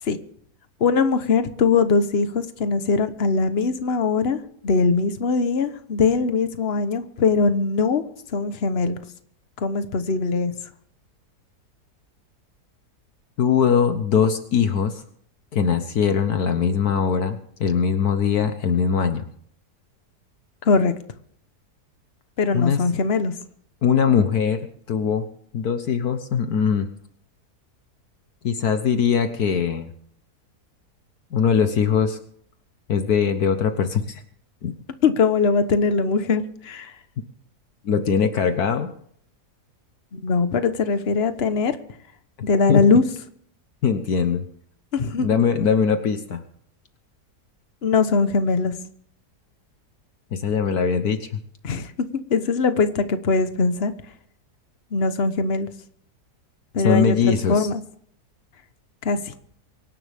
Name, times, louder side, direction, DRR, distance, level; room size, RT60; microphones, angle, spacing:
voice 1, 0.8-8.0 8.3-9.0 9.6-10.5 20.6-20.9 22.4-23.3 35.0-36.9 40.1-41.8 42.4-43.0 44.9-45.4 47.8-48.7 51.6-51.9 52.3-53.9 54.9-55.7 56.7-57.8 59.0-59.3, left 4 dB, 40° left, 10 dB, 1.3 m, -21 dB
voice 2, 13.4-15.0 15.5-19.2 22.5-22.8 23.8-25.2 25.5-26.9 28.4-29.9 31.3-32.2 32.9-34.2 34.6-34.7 37.8-38.9 42.7-42.8 43.8-44.4 45.2-46.4 50.3-51.4 56.8-57.7, left 6 dB, 70° left, 8 dB, 1.6 m, -21 dB
24.5 x 11.5 x 3.6 m, 0.63 s
omnidirectional pair, 1.7 m